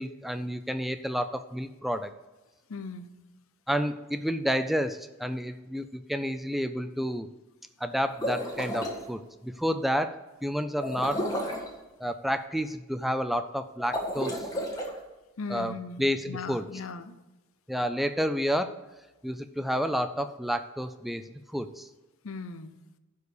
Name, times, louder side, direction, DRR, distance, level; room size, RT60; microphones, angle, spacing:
voice 1, 0.0-2.1 3.7-7.3 7.8-11.3 12.0-14.4 15.5-16.6 17.7-18.8 19.2-21.2 21.5-21.9, equal, ahead, 10 dB, 0.3 m, -30 dB
voice 2, 2.7-3.1 15.4-17.2 22.2-22.7, left 4 dB, 70° left, 11 dB, 0.7 m, -38 dB
sound 1, 8.0-9.0 10.8-11.7 13.8-14.9, equal, 15° left, 1.6 m, -32 dB
11.0 x 4.8 x 6.7 m, 1.1 s
head